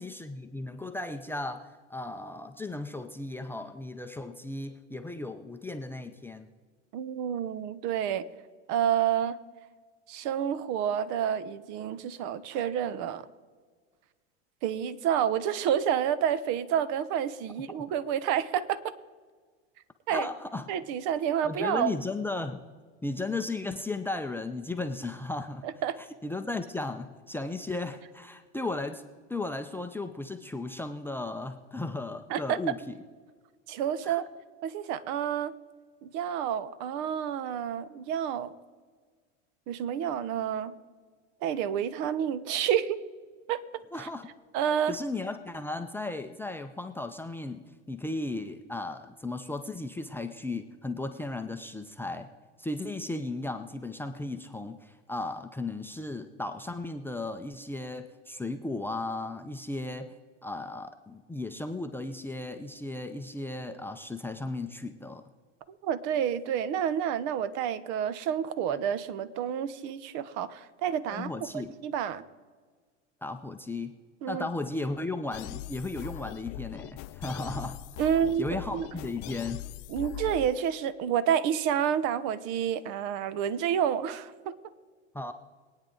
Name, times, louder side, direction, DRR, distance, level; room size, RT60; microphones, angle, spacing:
voice 1, 0.0-6.5 20.1-20.7 21.4-22.6 23.0-25.6 26.2-29.0 29.3-33.0 34.0-34.2 43.9-44.3 44.9-47.6 47.9-52.3 52.6-60.1 60.4-65.2 71.1-71.7 73.2-73.9 74.3-77.8 78.4-79.7 85.1-85.3, left 2 dB, 5° left, 5 dB, 0.6 m, -35 dB
voice 2, 6.9-8.3 8.7-9.4 10.1-13.2 14.6-18.9 20.1-20.3 20.7-22.0 25.6-26.0 32.3-32.6 33.7-34.3 34.6-35.5 36.0-38.5 39.7-40.7 41.4-43.0 43.5-43.6 44.0-44.1 44.5-45.0 65.8-72.2 74.2-74.5 78.0-78.9 79.9-84.6, right 9 dB, 50° right, 16 dB, 1.0 m, -29 dB
sound 1, 75.3-80.5, left 15 dB, 50° left, 0.5 m, -41 dB
23.0 x 9.3 x 3.9 m, 1.5 s
hypercardioid pair, 105°, 37 cm